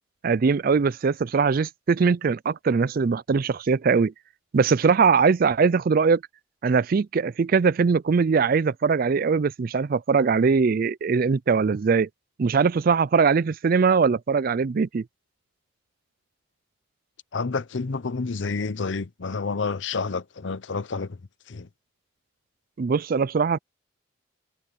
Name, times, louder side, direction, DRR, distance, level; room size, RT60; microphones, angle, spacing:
voice 1, 0.2-4.1 4.5-6.2 6.6-12.1 12.4-15.0 22.8-23.6, right 5 dB, 45° right, 0.4 m, -21 dB
voice 2, 17.3-21.2 21.5-21.7, left 4 dB, 65° left, 0.7 m, -29 dB
head